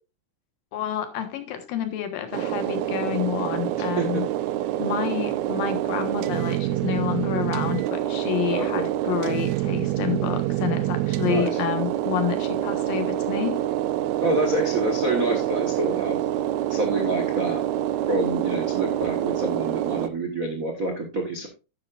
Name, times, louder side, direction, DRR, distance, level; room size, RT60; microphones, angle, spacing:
voice 1, 0.7-4.3 4.8-13.6, left 10 dB, 90° left, 8 dB, 3.2 m, -29 dB
sound 1, 2.3-20.1, right 13 dB, 80° right, 1.6 m, -26 dB
voice 2, 3.8-4.2 8.5-8.9 11.2-11.6 14.2-16.2 16.7-17.6 18.1-21.5, right 2 dB, 65° right, 3 dB, 0.8 m, -27 dB
10.5 x 9.7 x 2.5 m, 0.29 s
omnidirectional pair, 3.9 m